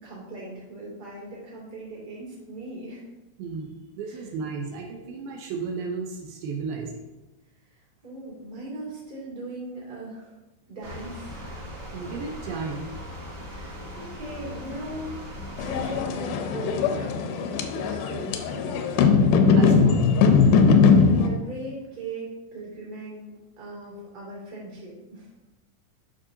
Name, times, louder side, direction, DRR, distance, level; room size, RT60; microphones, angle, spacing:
voice 1, 0.0-3.1 4.0-4.3 7.7-10.3 10.7-11.6 13.4-15.2 15.6-18.5 20.8-25.3, right 1 dB, 30° right, -6 dB, 2.6 m, -39 dB
voice 2, 3.4-7.1 11.9-12.9 19.6-20.0, right 5 dB, 80° right, 1 dB, 2.6 m, -33 dB
sound 1, 10.8-16.0, equal, 45° right, 2.6 m, -39 dB
sound 2, 15.6-21.3, left 5 dB, 85° left, 2.5 m, -20 dB
11.0 x 5.6 x 2.7 m, 1.1 s
omnidirectional pair, 4.3 m